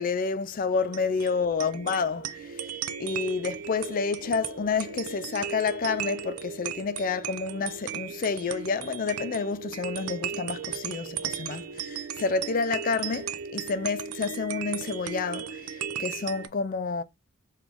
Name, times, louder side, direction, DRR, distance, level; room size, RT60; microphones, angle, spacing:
voice 1, 0.0-17.0, left 5 dB, 40° left, 0.4 m, -29 dB
sound 1, 0.7-16.5, right 8 dB, 85° right, 0.4 m, -36 dB
3.8 x 3.0 x 3.4 m
head